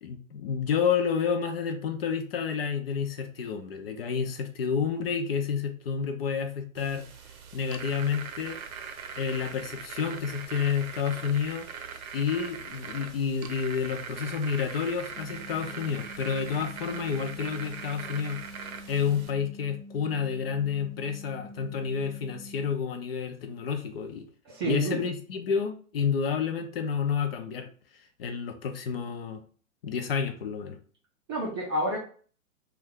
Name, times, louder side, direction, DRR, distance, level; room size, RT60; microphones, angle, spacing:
voice 1, 0.0-7.0 7.5-8.6 9.2-11.7 12.1-18.4 18.9-24.3 24.6-27.7 28.2-29.4 29.8-30.8, left 6 dB, 45° left, 6 dB, 0.4 m, -30 dB
sound 1, 6.8-19.3, right 6 dB, 80° right, 0.6 m, -41 dB
sound 2, 15.2-22.7, left 1 dB, 65° left, 0.9 m, -46 dB
voice 2, 24.5-25.0 31.3-32.0, right 2 dB, 20° right, -3 dB, 0.4 m, -29 dB
2.5 x 2.3 x 3.6 m, 0.43 s
hypercardioid pair, 130°, 42 cm